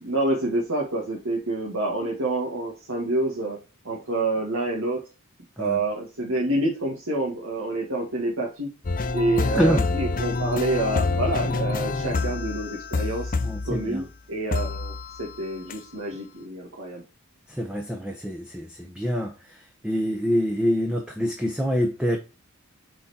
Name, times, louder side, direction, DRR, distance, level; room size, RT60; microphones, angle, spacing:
voice 1, 0.0-3.6 3.9-5.0 5.6-8.7 9.1-13.3 13.6-17.0, right 2 dB, 75° right, 1.9 m, -27 dB
sound 1, 8.8-14.0 14.5-15.4 15.7-15.8, left 3 dB, 40° left, 0.6 m, -27 dB
voice 2, 13.4-14.0 17.6-19.3 19.8-22.2, equal, 5° right, 0.8 m, -25 dB
6.2 x 4.4 x 4.2 m
head